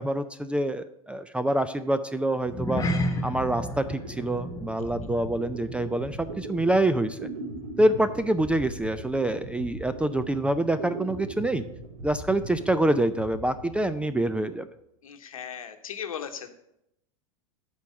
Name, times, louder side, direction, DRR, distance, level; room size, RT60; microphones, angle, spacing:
voice 1, 0.0-2.8 3.2-7.3 7.8-11.6 12.0-14.7, right 1 dB, 5° right, 12 dB, 0.4 m, -26 dB
sound 1, 2.4-7.1 7.3-7.6 8.1-8.2, left 1 dB, 20° left, 1.3 m, -33 dB
sound 2, 3.9-14.4, right 1 dB, 80° right, 2.0 m, -40 dB
voice 2, 15.0-16.5, left 8 dB, 75° left, 7 dB, 1.1 m, -37 dB
8.3 x 4.8 x 7.5 m, 0.79 s
hypercardioid pair, 90°, 18 cm